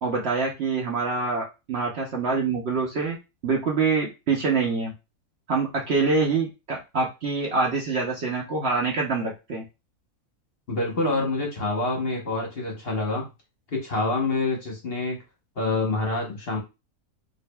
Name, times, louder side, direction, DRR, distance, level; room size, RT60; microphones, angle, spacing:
voice 1, 0.0-3.2 3.4-4.9 5.5-9.6, right 4 dB, 55° right, -1 dB, 0.8 m, -25 dB
voice 2, 10.7-13.3 13.7-15.2 15.6-16.6, left 2 dB, 45° left, 0 dB, 1.1 m, -26 dB
4.9 x 2.7 x 2.2 m, 0.26 s
omnidirectional pair, 1.6 m